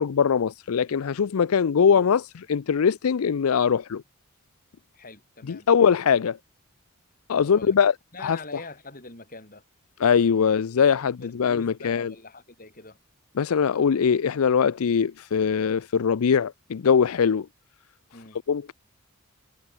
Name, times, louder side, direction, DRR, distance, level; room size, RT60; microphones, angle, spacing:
voice 1, 0.0-4.0 5.5-6.4 7.3-7.9 8.2-8.4 10.0-12.1 13.4-17.5 18.5-18.7, left 6 dB, 80° left, 0.5 m, -22 dB
voice 2, 4.9-5.9 7.4-7.8 8.1-9.6 11.0-13.0 18.1-18.4, left 3 dB, 40° left, 7.6 m, -44 dB
head